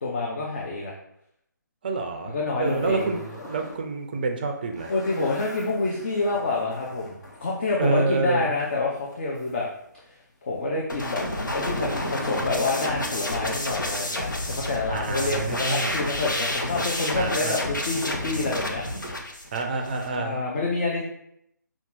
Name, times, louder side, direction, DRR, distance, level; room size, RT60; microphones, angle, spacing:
voice 1, 0.0-0.9 2.3-3.3 4.9-9.7 10.1-11.2 11.5-18.8 20.2-21.0, left 3 dB, 35° left, -2 dB, 0.6 m, -28 dB
voice 2, 1.8-4.9 7.8-8.5 14.9-16.0 17.2-17.6 19.5-20.4, right 3 dB, 30° right, 4 dB, 0.5 m, -27 dB
sound 1, 2.6-3.8 4.1-10.3 10.5-14.1, left 2 dB, 60° left, 1.5 m, -44 dB
sound 2, 10.9-20.2, left 1 dB, 75° left, 0.9 m, -30 dB
5.5 x 2.4 x 3.7 m, 0.76 s
figure-of-eight pair, 145°, 10 cm